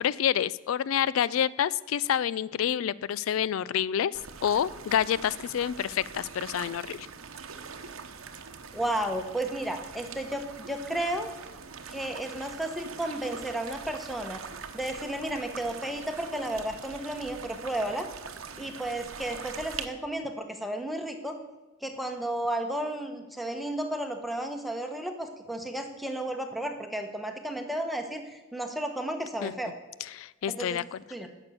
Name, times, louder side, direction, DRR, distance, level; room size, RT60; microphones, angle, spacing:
voice 1, 0.0-7.1 29.4-29.5 30.0-31.0, left 9 dB, 85° left, 19 dB, 0.3 m, -28 dB
sound 1, 4.1-19.9, right 5 dB, 85° right, 1.0 m, -43 dB
voice 2, 8.7-11.3 11.9-14.4 14.7-18.1 18.6-21.4 21.8-29.7 30.6-30.8 31.1-31.3, right 1 dB, ahead, 5 dB, 1.1 m, -33 dB
10.5 x 6.8 x 8.5 m, 1.2 s
head